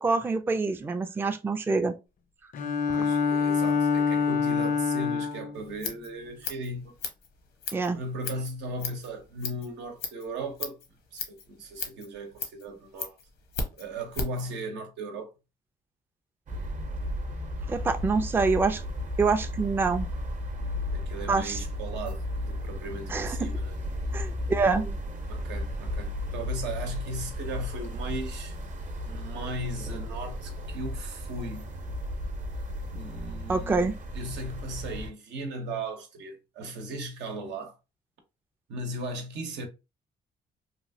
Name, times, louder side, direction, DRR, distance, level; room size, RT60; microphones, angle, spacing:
voice 1, 0.0-1.9 7.7-8.0 17.7-18.8 19.2-20.1 21.3-21.6 23.1-23.5 24.1-25.0 33.5-33.9, right 4 dB, 10° right, 0.3 m, -26 dB
Bowed string instrument, 2.5-5.6, left 5 dB, 50° left, 0.5 m, -26 dB
voice 2, 2.9-6.9 7.9-10.8 11.1-13.1 13.8-15.3 20.9-23.7 25.3-28.5 29.0-31.7 32.9-37.7 38.7-39.7, right 1 dB, 85° right, 0.8 m, -37 dB
Scissors, 5.5-14.5, left 4 dB, 80° left, 0.9 m, -38 dB
sound 1, 16.5-35.1, left 1 dB, 45° right, 0.7 m, -34 dB
3.0 x 2.4 x 2.6 m
cardioid pair, 95°, 18 cm